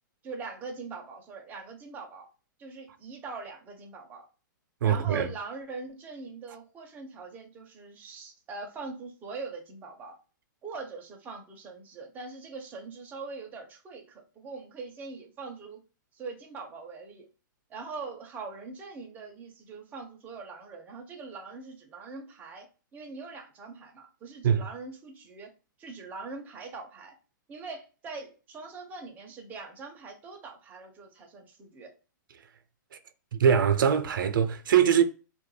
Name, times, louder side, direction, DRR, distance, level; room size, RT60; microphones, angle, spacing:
voice 1, 0.2-2.3 2.6-4.3 4.8-10.2 10.6-15.8 16.1-17.3 17.7-25.5 25.8-27.2 27.5-31.9, right 4 dB, 15° right, 0.5 m, -42 dB
voice 2, 4.8-5.3 24.4-24.6 33.3-35.0, right 8 dB, 80° right, 0.4 m, -22 dB
2.2 x 2.0 x 3.1 m
hypercardioid pair, 150°, 11 cm